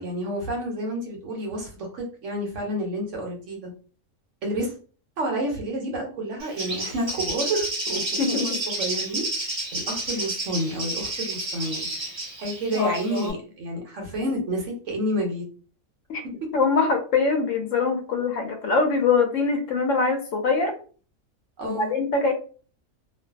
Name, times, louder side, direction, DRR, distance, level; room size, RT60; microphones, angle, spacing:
voice 1, 0.0-3.7 4.4-4.7 5.2-8.0 8.3-8.5 8.8-11.9 12.4-15.4 21.6-21.9, right 1 dB, 65° right, 1 dB, 1.0 m, -29 dB
Bird, 6.4-13.3, right 2 dB, 30° right, 0.6 m, -31 dB
voice 2, 12.7-13.3 16.1-16.2 16.5-20.7 21.6-22.3, left 4 dB, 70° left, 4 dB, 0.9 m, -23 dB
2.5 x 2.4 x 2.3 m, 0.39 s
omnidirectional pair, 1.5 m